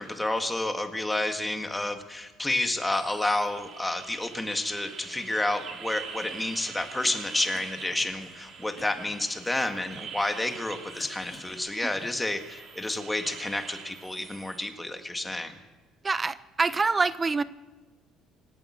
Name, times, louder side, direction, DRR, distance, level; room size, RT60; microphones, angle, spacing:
voice 1, 0.0-15.5, left 2 dB, 10° left, 7 dB, 1.7 m, -30 dB
sound 1, 2.9-14.6, right 6 dB, 50° right, 3.1 m, -44 dB
Cough, 6.8-8.4 8.8-10.2 10.6-12.5, left 3 dB, 25° left, 2.8 m, -50 dB
voice 2, 16.0-17.4, right 4 dB, 20° right, 16 dB, 0.5 m, -25 dB
25.5 x 8.8 x 6.4 m, 1.3 s
cardioid pair, 120°, 0 cm